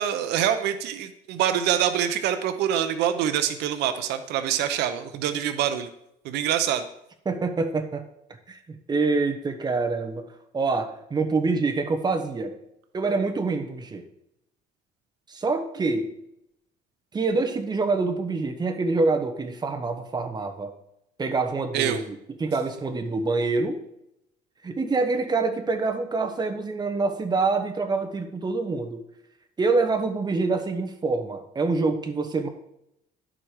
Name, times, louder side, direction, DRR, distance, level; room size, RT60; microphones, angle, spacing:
voice 1, 0.0-5.9 6.2-6.9 21.7-22.0, right 10 dB, 85° right, 9 dB, 0.7 m, -25 dB
voice 2, 7.2-8.0 8.5-10.3 10.5-12.5 12.9-14.0 15.3-16.1 17.1-20.7 21.2-22.1 22.4-23.8 24.6-29.0 29.6-32.5, right 3 dB, 25° right, 5 dB, 1.2 m, -26 dB
11.0 x 5.0 x 4.6 m, 0.79 s
cardioid pair, 110°, 17 cm